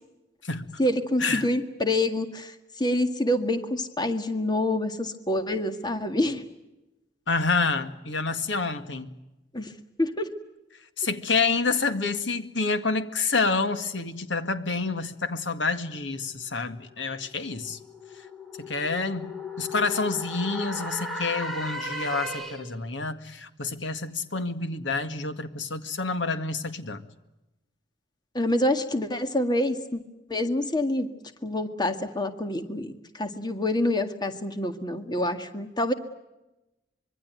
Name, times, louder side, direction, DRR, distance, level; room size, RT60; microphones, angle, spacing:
voice 1, 0.8-6.4 9.5-9.7 10.0-10.3 28.3-30.0 30.3-31.1 31.4-35.9, left 1 dB, 25° left, 8 dB, 1.9 m, -27 dB
voice 2, 7.3-9.1 11.0-17.8 18.6-19.3 19.6-27.0, left 4 dB, 75° left, 10 dB, 2.0 m, -28 dB
sound 1, 16.7-22.8, left 1 dB, ahead, 2.8 m, -36 dB
25.5 x 23.0 x 9.3 m, 0.97 s
head